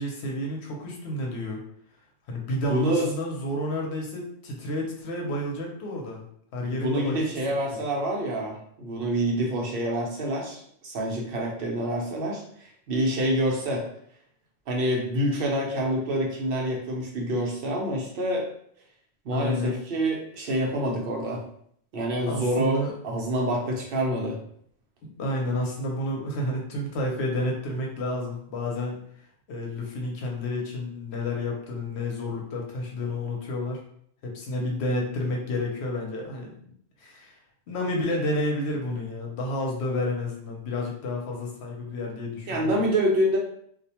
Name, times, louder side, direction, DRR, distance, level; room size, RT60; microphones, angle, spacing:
voice 1, 0.0-1.6 2.3-6.2 6.5-7.4 7.7-7.8 19.3-19.7 22.2-22.9 25.0-29.0 29.5-33.8 34.2-36.7 37.0-37.4 37.7-42.8, left 1 dB, 90° left, 0 dB, 0.9 m, -30 dB
voice 2, 2.7-3.1 6.7-13.9 14.7-18.5 19.2-21.5 21.9-24.4 42.5-43.4, right 1 dB, 65° right, -1 dB, 0.8 m, -27 dB
2.4 x 2.1 x 2.8 m, 0.66 s
omnidirectional pair, 1.1 m